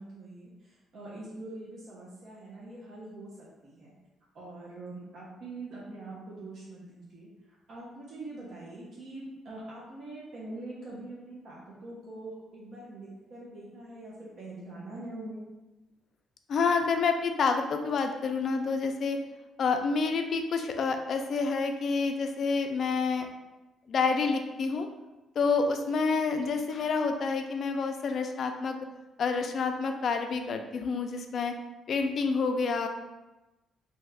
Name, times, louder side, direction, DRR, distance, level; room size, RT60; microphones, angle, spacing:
voice 1, 0.0-3.9 4.3-15.5, right 2 dB, 60° right, -6 dB, 0.7 m, -44 dB
voice 2, 16.5-19.2 19.6-23.3 23.9-24.9 25.4-28.8 29.2-31.5 31.9-32.9, left 4 dB, 50° left, 5 dB, 0.3 m, -28 dB
2.8 x 2.3 x 3.3 m, 1.1 s
cardioid pair, 135°, 0 cm